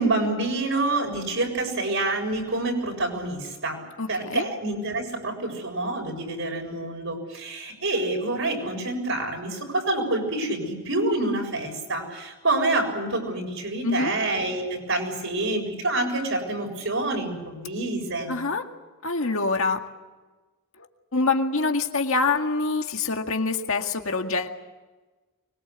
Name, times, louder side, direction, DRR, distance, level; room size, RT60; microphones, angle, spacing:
voice 1, 0.0-3.8 4.1-18.4, right 2 dB, 60° right, 3 dB, 7.2 m, -27 dB
voice 2, 4.0-4.5 13.8-14.1 18.3-18.7 19.0-19.9 20.8-24.5, left 3 dB, 65° left, 4 dB, 2.0 m, -25 dB
24.5 x 22.5 x 8.2 m, 1.2 s
head